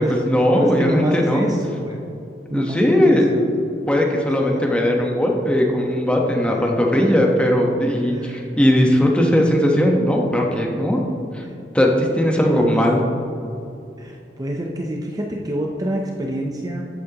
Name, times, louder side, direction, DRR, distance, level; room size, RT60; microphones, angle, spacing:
voice 1, 0.0-1.5 2.5-3.3 3.9-11.0 11.3-11.4 11.7-13.0, equal, 5° left, 0 dB, 1.1 m, -18 dB
voice 2, 0.5-2.0 2.5-3.5 6.5-6.7 8.0-8.5 11.4-11.6 12.4-12.7 14.0-16.8, right 1 dB, 20° right, 1 dB, 0.7 m, -26 dB
13.5 x 8.7 x 3.0 m, 2.6 s
head